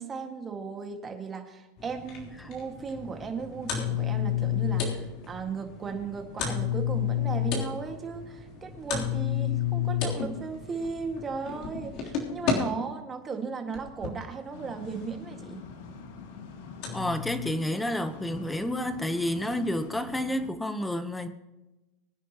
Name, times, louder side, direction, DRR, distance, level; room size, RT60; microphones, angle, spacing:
voice 1, 0.0-15.6, right 5 dB, 25° right, 1.9 m, -36 dB
sound 1, 1.8-12.5 13.3-14.2 15.4-15.5 16.0-16.1 16.8-17.5, left 9 dB, 55° left, 3.4 m, -31 dB
sound 2, 14.5-20.5, left 5 dB, 75° left, 2.0 m, -44 dB
voice 2, 16.9-21.3, left 1 dB, 5° left, 1.0 m, -30 dB
23.0 x 9.9 x 3.0 m
hypercardioid pair, 115°, 0 cm